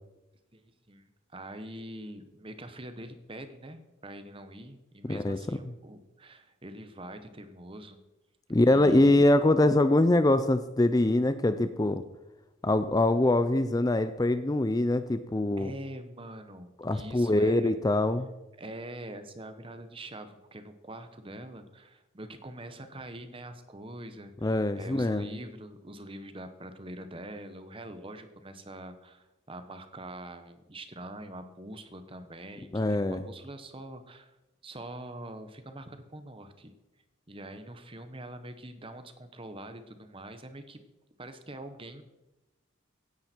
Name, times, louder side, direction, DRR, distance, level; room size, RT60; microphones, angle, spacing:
voice 1, 0.5-8.0 8.7-9.2 15.6-17.8 18.6-34.3 34.6-36.7 37.3-40.8 41.2-42.0, right 1 dB, 25° right, 9 dB, 1.1 m, -44 dB
voice 2, 5.0-5.4 8.5-12.0 12.6-15.7 16.8-18.3 24.4-25.3 32.7-33.2, left 1 dB, 20° left, 11 dB, 0.5 m, -24 dB
16.0 x 10.5 x 4.5 m, 1.0 s
head